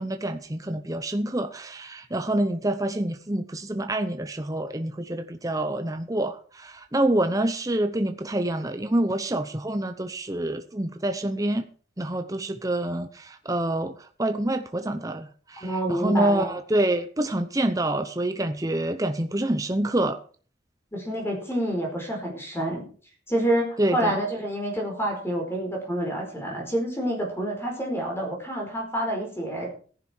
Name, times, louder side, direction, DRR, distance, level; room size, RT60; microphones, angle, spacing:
voice 1, 0.0-11.6 12.0-20.2 23.8-24.2, right 1 dB, 20° right, 8 dB, 0.8 m, -27 dB
voice 2, 15.6-16.5 20.9-22.8 23.3-29.7, right 1 dB, 15° left, 0 dB, 4.8 m, -28 dB
14.5 x 11.0 x 4.6 m, 0.41 s
head